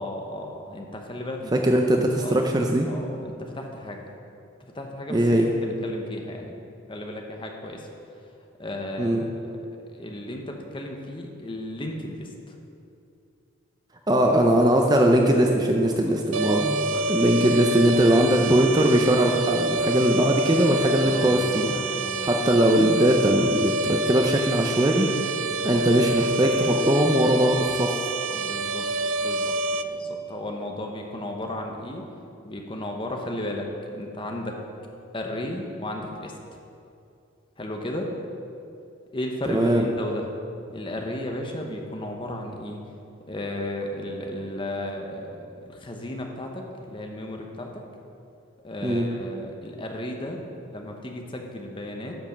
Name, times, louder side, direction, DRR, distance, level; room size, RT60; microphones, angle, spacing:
voice 1, 0.0-1.5 2.2-2.5 2.8-4.0 4.6-5.2 5.6-6.5 6.9-7.9 8.6-9.5 9.9-12.6 15.9-16.1 16.9-17.1 20.7-22.3 25.4-25.8 28.3-28.9 29.2-29.5 29.8-32.1 32.4-34.6 35.1-36.6 37.6-38.1 39.1-40.3 40.7-42.8 43.3-45.4 45.6-47.8 48.6-50.4 50.7-52.2, left 1 dB, 25° left, 2 dB, 0.9 m, -34 dB
voice 2, 1.5-2.9 5.1-5.5 9.0-9.2 14.1-16.8 17.1-25.1 25.6-28.0 39.5-39.8 48.8-49.1, right 1 dB, 20° right, 2 dB, 0.5 m, -20 dB
sound 1, 16.3-29.8, right 2 dB, 80° right, 0.5 m, -27 dB
10.5 x 5.4 x 6.6 m, 2.6 s
head